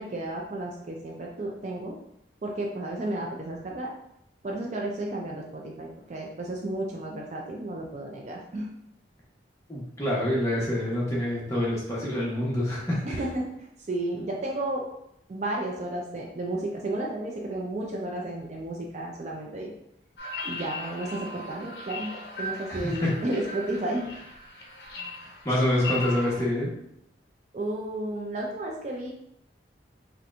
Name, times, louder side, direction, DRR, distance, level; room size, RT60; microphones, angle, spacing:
voice 1, 0.0-2.0 2.4-3.9 4.4-8.7 13.0-13.5 13.9-14.8 15.3-19.7 20.4-24.1 27.5-29.1, right 1 dB, 40° right, -1 dB, 0.4 m, -32 dB
voice 2, 9.7-13.0 22.7-23.1 25.4-26.7, left 1 dB, 15° left, -6 dB, 0.9 m, -26 dB
sound 1, 20.2-26.5, left 2 dB, 65° left, 0.6 m, -38 dB
4.2 x 2.2 x 2.5 m, 0.78 s
head